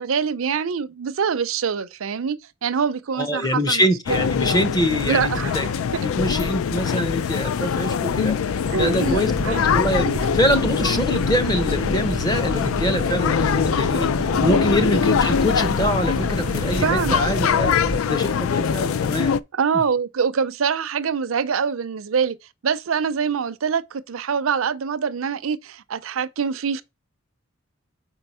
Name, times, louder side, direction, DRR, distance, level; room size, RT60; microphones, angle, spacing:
voice 1, 0.0-4.3 5.0-5.7 8.7-9.6 16.8-17.3 19.5-22.4 22.6-26.8, right 6 dB, 80° right, 0.5 m, -24 dB
voice 2, 3.2-5.7 6.0-10.1 10.3-17.7 18.0-19.3, equal, 20° left, 0.7 m, -24 dB
sound 1, 4.1-19.4, left 7 dB, 90° left, 0.4 m, -23 dB
Boat Water vehicle, 8.6-18.0, right 2 dB, 15° right, 0.3 m, -30 dB
4.7 x 4.5 x 5.4 m
head